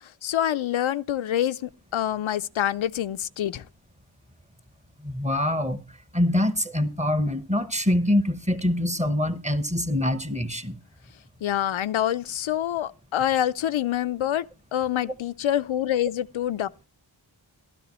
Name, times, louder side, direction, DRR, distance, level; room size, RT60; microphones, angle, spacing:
voice 1, 0.2-3.6 11.4-14.4 14.7-16.9, left 11 dB, 75° left, 0.5 m, -26 dB
voice 2, 5.0-5.8 6.1-10.7, left 1 dB, 15° right, 1.0 m, -24 dB
13.0 x 12.5 x 3.0 m
wide cardioid pair, 80°, 47 cm